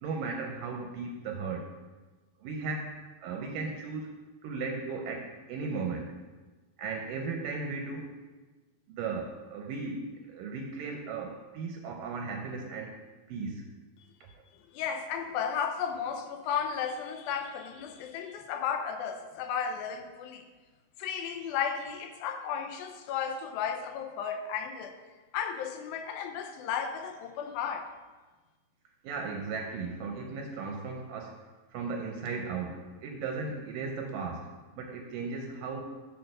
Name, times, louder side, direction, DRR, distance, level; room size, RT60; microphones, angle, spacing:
voice 1, 0.0-1.7 2.4-4.2 4.4-6.1 6.8-8.1 8.9-13.0 13.3-13.7 29.0-31.4 31.7-35.8, right 4 dB, 80° right, 2 dB, 2.1 m, -36 dB
voice 2, 14.7-20.5 21.0-25.0 25.3-27.9, left 7 dB, 85° left, 6 dB, 2.4 m, -34 dB
8.0 x 3.8 x 6.5 m, 1.3 s
omnidirectional pair, 4.2 m